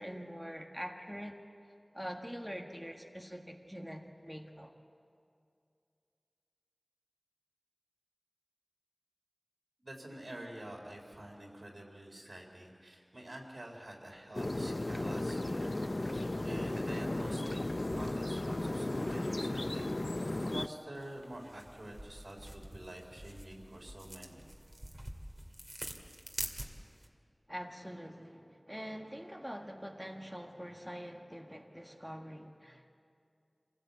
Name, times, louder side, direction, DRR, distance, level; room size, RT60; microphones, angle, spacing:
voice 1, 0.0-1.4 1.9-4.7 27.5-32.9, equal, 5° right, 1 dB, 1.6 m, -44 dB
voice 2, 9.8-17.6 17.9-24.4, right 1 dB, 75° right, 0 dB, 3.9 m, -48 dB
sound 1, 14.3-20.7, left 2 dB, 55° left, 0.5 m, -35 dB
sound 2, 20.9-27.1, right 1 dB, 40° right, 2.2 m, -46 dB
25.5 x 16.0 x 8.2 m, 2.5 s
wide cardioid pair, 40°, 0 cm